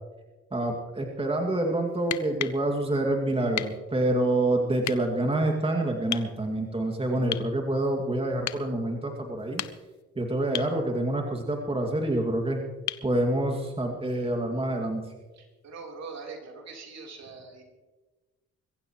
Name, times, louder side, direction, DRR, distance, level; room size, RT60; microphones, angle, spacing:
voice 1, 0.5-9.6 10.2-12.6 13.0-15.1, right 1 dB, 20° right, 2 dB, 2.4 m, -27 dB
sound 1, 2.0-2.6 3.6-3.8 4.8-5.0 6.1-6.3 7.3-7.5 8.5-8.7 9.4-10.0 10.5-10.8 12.9-13.1 15.0-15.1, left 13 dB, 65° left, 0.8 m, -33 dB
voice 2, 15.4-17.6, right 4 dB, 55° right, 1 dB, 3.9 m, -42 dB
22.5 x 15.5 x 3.1 m, 1.2 s
supercardioid pair, 70°, 31 cm